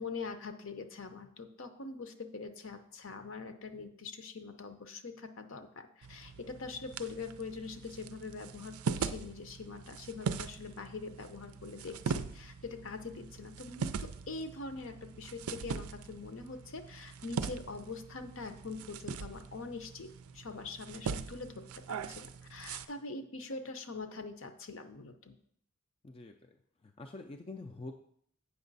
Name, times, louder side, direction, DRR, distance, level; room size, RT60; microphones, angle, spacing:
voice 1, 0.0-25.3, left 4 dB, 60° left, 8 dB, 0.7 m, -43 dB
sound 1, 6.0-22.9, right 6 dB, 80° right, 0.4 m, -41 dB
voice 2, 26.0-26.6 26.8-28.0, left 2 dB, 25° left, 4 dB, 0.4 m, -46 dB
8.1 x 5.9 x 4.0 m, 0.66 s
head